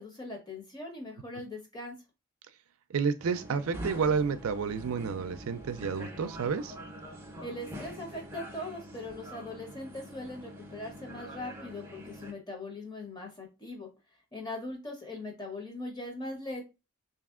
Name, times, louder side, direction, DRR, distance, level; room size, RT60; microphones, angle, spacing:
voice 1, 0.0-2.0 7.4-13.9 14.3-16.6, left 2 dB, 20° left, 0.9 m, -40 dB
voice 2, 2.9-6.7, right 5 dB, 80° right, 0.4 m, -30 dB
sound 1, 3.2-12.3, equal, 10° right, 0.6 m, -44 dB
3.2 x 2.7 x 3.6 m
head